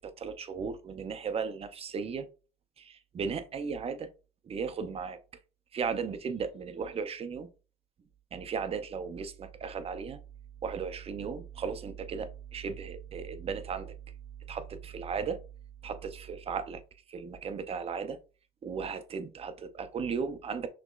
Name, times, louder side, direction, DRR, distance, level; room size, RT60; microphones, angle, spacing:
voice 1, 0.0-2.3 2.8-4.1 4.4-5.2 5.7-7.5 8.3-10.2 10.6-13.9 14.5-15.4 15.8-16.8 17.1-18.2 18.6-20.7, right 6 dB, 35° right, 0.6 m, -36 dB
5.9 x 3.0 x 2.4 m
cardioid pair, 110°, 17 cm